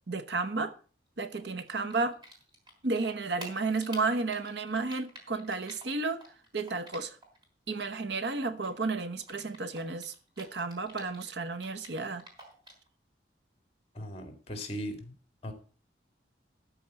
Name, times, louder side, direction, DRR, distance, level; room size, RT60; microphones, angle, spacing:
voice 1, 0.1-0.7 1.2-2.2 2.8-6.2 6.5-7.1 7.7-12.2, right 3 dB, 75° right, 1.0 m, -32 dB
Typing, 1.3-2.7 3.0-7.4 7.7-11.3 11.6-12.9, equal, 25° right, 3.9 m, -49 dB
voice 2, 13.9-15.1 15.4-15.5, equal, 30° left, 2.2 m, -38 dB
13.0 x 4.6 x 8.0 m
head